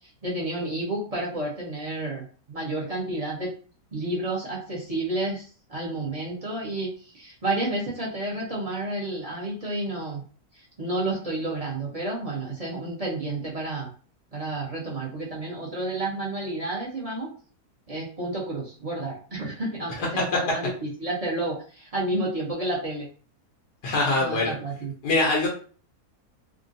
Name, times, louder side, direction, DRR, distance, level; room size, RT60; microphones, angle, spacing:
voice 1, 0.2-3.5 3.9-5.4 5.7-10.2 10.5-13.9 14.3-17.3 17.9-23.1 24.2-24.9, right 2 dB, 30° right, -5 dB, 0.8 m, -30 dB
voice 2, 23.8-24.5 25.0-25.5, left 2 dB, 80° left, -1 dB, 1.4 m, -23 dB
3.6 x 2.2 x 2.6 m, 0.40 s
omnidirectional pair, 1.7 m